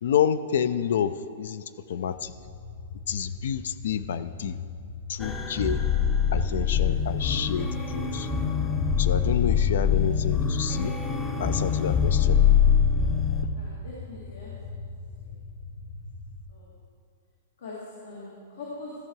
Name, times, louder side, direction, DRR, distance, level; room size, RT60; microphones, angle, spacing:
voice 1, 0.0-2.3 3.1-4.6 5.1-5.8 6.3-8.3 9.0-10.9 11.4-12.4, left 8 dB, 70° left, 14 dB, 0.4 m, -29 dB
spaceship rumble bg, 2.1-16.4, left 3 dB, 45° left, 1.2 m, -40 dB
sound 1, 5.2-13.4, left 7 dB, 10° left, 0.6 m, -24 dB
voice 2, 13.5-14.7 15.2-15.3 16.5-16.7 17.6-17.8 18.0-18.9, left 3 dB, 90° left, -6 dB, 2.1 m, -42 dB
14.0 x 5.9 x 4.6 m, 2.4 s
hypercardioid pair, 165°, 0 cm